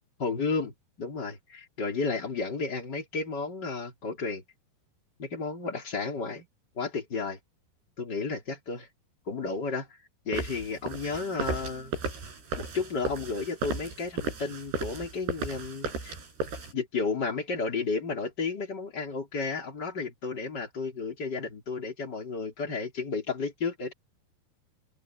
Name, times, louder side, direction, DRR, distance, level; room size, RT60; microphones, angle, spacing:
voice 1, 0.2-4.4 5.2-6.5 6.8-7.4 8.0-8.9 9.3-9.9 10.2-11.9 12.6-16.1 16.7-23.9, left 4 dB, 25° left, 3.8 m, -32 dB
sound 1, 10.3-16.7, right 3 dB, 70° right, 9.8 m, -35 dB
open air
omnidirectional pair, 5.0 m